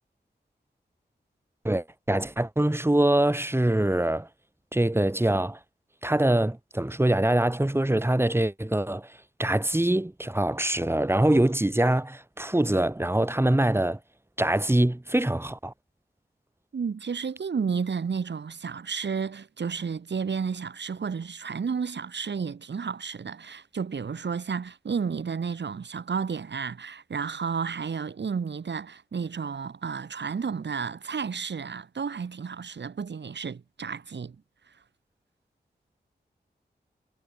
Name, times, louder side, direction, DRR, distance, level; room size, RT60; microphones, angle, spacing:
voice 1, 1.6-4.3 4.7-5.6 6.0-9.1 9.4-14.0 14.4-15.7, right 1 dB, 15° right, 2.9 m, -24 dB
voice 2, 16.7-34.4, right 6 dB, 85° right, 5.2 m, -32 dB
wide cardioid pair, 80°, 18 cm